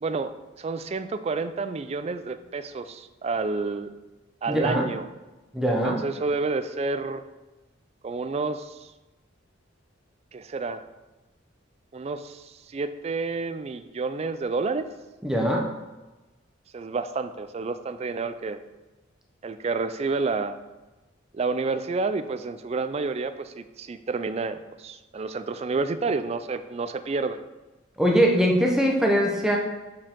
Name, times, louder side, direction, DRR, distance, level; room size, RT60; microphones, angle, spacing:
voice 1, 0.0-3.9 4.4-5.0 5.7-7.2 8.0-8.9 10.3-10.9 11.9-14.9 16.7-18.6 19.4-20.6 21.3-27.4, right 4 dB, 35° right, 11 dB, 0.3 m, -29 dB
voice 2, 4.5-4.9 5.5-6.0 15.2-15.6 28.0-29.6, equal, 5° right, 0 dB, 0.8 m, -21 dB
7.3 x 4.6 x 3.7 m, 1.1 s
head